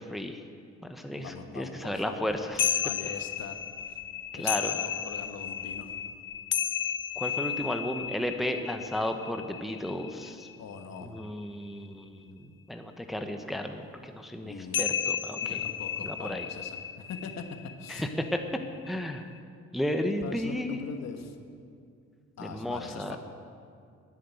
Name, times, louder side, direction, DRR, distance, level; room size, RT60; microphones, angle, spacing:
voice 1, 0.1-0.4 0.9-2.8 4.3-4.7 7.2-10.5 11.0-12.4 12.7-15.6 16.0-16.4 17.9-18.4 18.9-19.2 19.7-20.8 22.4-23.2, left 1 dB, ahead, 5 dB, 0.9 m, -33 dB
voice 2, 1.2-3.6 3.9-4.0 4.3-5.9 10.6-11.1 14.4-14.8 15.4-17.4 17.8-18.1 20.2-21.3 22.4-23.2, left 6 dB, 60° left, 6 dB, 1.3 m, -42 dB
sound 1, 2.6-11.2 14.7-19.4, left 9 dB, 40° left, 0.5 m, -33 dB
10.0 x 9.5 x 9.0 m, 2.4 s
cardioid pair, 90°, 30 cm